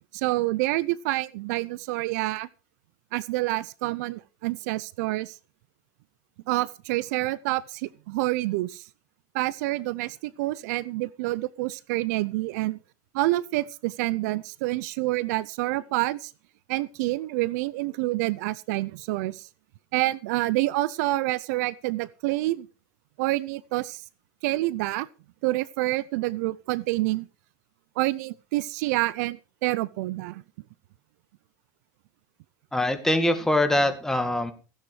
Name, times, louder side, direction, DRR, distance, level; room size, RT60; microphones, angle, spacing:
voice 1, 0.1-2.5 3.1-5.4 6.5-8.8 9.3-12.8 13.1-16.3 16.7-19.5 19.9-22.7 23.2-24.0 24.4-25.1 25.4-27.3 28.0-30.4, right 19 dB, 70° right, 0.6 m, -27 dB
voice 2, 32.7-34.5, left 1 dB, 5° left, 2.1 m, -23 dB
16.0 x 10.0 x 4.9 m
supercardioid pair, 125°, 9 cm